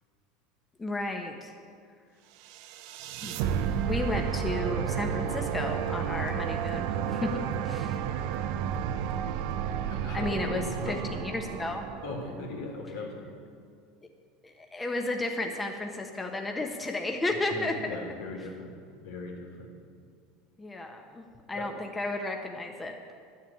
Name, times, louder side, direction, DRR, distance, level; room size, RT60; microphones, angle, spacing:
voice 1, 0.8-1.5 3.2-3.3 3.8-7.3 7.7-8.0 10.1-11.9 14.4-17.7 20.6-23.1, left 2 dB, 15° left, 2 dB, 1.2 m, -33 dB
sound 1, 2.5-12.7, right 8 dB, 65° right, 0.7 m, -32 dB
voice 2, 7.2-7.5 7.9-8.0 9.2-9.3 9.9-11.1 12.0-13.3 17.5-19.7 21.5-21.8, left 2 dB, 80° left, 0 dB, 2.8 m, -39 dB
11.0 x 7.5 x 8.6 m, 2.2 s
supercardioid pair, 110°, 0 cm